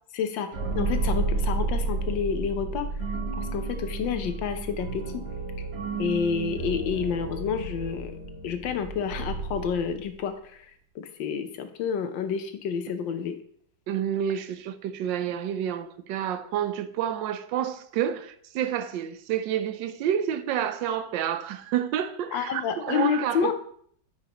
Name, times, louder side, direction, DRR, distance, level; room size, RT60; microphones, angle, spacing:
voice 1, 0.1-0.5 0.7-2.9 3.4-5.0 5.6-5.7 6.0-8.1 8.4-10.6 10.9-13.3 22.3-23.5, left 7 dB, 85° left, 1.5 m, -29 dB
sound 1, 0.5-10.2, right 3 dB, 40° right, 1.3 m, -31 dB
voice 2, 13.9-23.5, right 9 dB, 90° right, 1.3 m, -29 dB
8.9 x 5.6 x 3.0 m
omnidirectional pair, 2.0 m